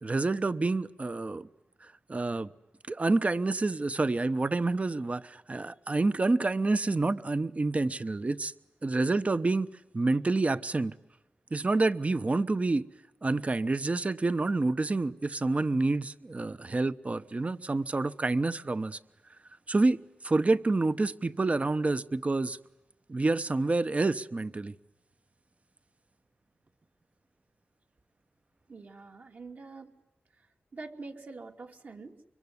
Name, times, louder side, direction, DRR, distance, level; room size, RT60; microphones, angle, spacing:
voice 1, 0.0-1.5 1.8-2.5 2.9-8.5 8.8-11.0 11.5-12.9 13.2-19.0 19.7-22.6 23.1-24.7, right 3 dB, 35° right, 0.9 m, -28 dB
voice 2, 28.7-29.9 30.4-32.3, right 3 dB, 60° right, 2.9 m, -45 dB
25.5 x 23.0 x 9.7 m
cardioid pair, 70°, 4 cm